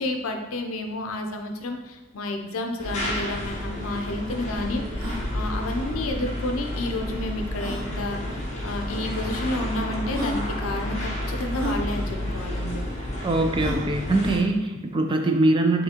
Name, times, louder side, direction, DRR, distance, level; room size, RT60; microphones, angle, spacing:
voice 1, 0.0-12.9 14.7-14.9, left 2 dB, 80° left, 4 dB, 0.6 m, -31 dB
sound 1, 2.8-14.4, left 1 dB, 35° left, 0.8 m, -30 dB
sound 2, 3.4-3.5 3.6-3.7 4.3-4.4 4.9-5.2 6.6-6.7 7.5-7.9 8.9-9.0 9.7-9.8 10.1-10.4 11.5-11.8 13.6-13.9, right 1 dB, 90° right, 0.9 m, -32 dB
voice 2, 13.2-15.8, right 2 dB, 20° right, 4 dB, 0.3 m, -22 dB
5.7 x 2.7 x 2.9 m, 1.1 s
head